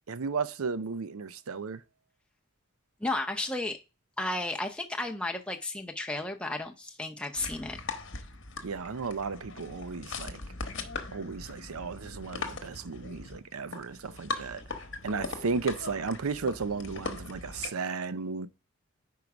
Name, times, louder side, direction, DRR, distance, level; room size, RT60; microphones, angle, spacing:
voice 1, 0.1-1.8 8.6-10.4 11.1-14.6 15.0-18.5, right 4 dB, 85° right, 0.6 m, -34 dB
voice 2, 3.0-3.8 4.2-7.8 14.3-14.4, left 2 dB, 5° left, 0.6 m, -33 dB
sound 1, 7.4-17.7, left 3 dB, 55° left, 1.0 m, -40 dB
5.2 x 4.8 x 5.9 m
head